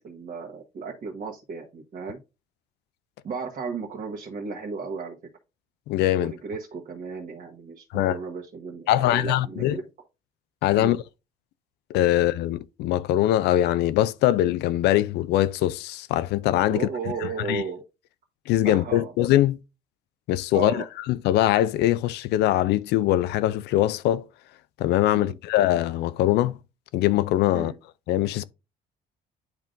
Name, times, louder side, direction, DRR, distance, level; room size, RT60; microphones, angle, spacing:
voice 1, 0.0-2.2 3.2-5.2 6.1-9.8 10.7-11.0 16.7-17.8 18.6-19.1 20.5-20.9 25.1-25.4 27.5-27.7, right 5 dB, 50° right, 1.4 m, -34 dB
voice 2, 5.9-6.3 7.9-8.1 8.9-9.8 10.6-11.0 11.9-16.9 17.5-17.6 18.5-19.6 20.3-24.3 24.8-26.5 26.9-27.7 28.1-28.4, left 13 dB, 80° left, 0.5 m, -22 dB
10.5 x 3.7 x 2.5 m
cardioid pair, 110°, 17 cm